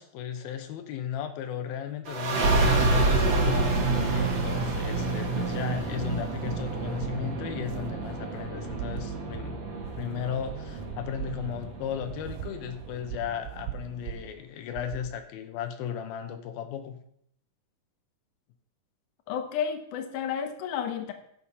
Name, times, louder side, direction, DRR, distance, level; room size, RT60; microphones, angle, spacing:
voice 1, 0.0-9.6 10.0-17.0, left 9 dB, 85° left, 7 dB, 2.9 m, -36 dB
sound 1, 2.1-13.3, right 2 dB, 50° right, 2.7 m, -28 dB
sound 2, 6.1-14.3 14.8-15.1, right 11 dB, 85° right, 2.6 m, -41 dB
voice 2, 19.3-21.1, left 8 dB, 70° left, 6 dB, 2.5 m, -31 dB
10.5 x 7.9 x 5.7 m, 0.69 s
omnidirectional pair, 4.1 m